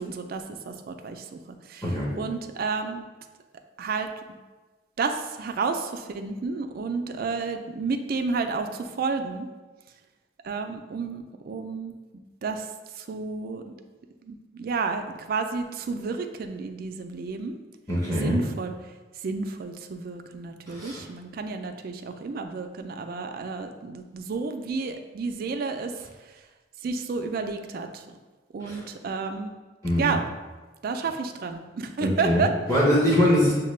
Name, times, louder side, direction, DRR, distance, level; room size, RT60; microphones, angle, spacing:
voice 1, 0.0-3.1 3.8-4.1 5.0-9.5 10.4-11.9 12.4-13.7 14.2-17.6 18.1-18.9 19.2-26.4 26.8-28.1 28.5-29.5 30.0-30.2 30.8-32.5, right 4 dB, 50° right, 6 dB, 0.3 m, -31 dB
voice 2, 17.9-18.4 20.7-21.0 28.7-28.8 29.8-30.1 32.0-32.4 32.7-33.5, equal, 15° left, -7 dB, 0.7 m, -22 dB
6.4 x 2.2 x 3.1 m, 1.3 s
head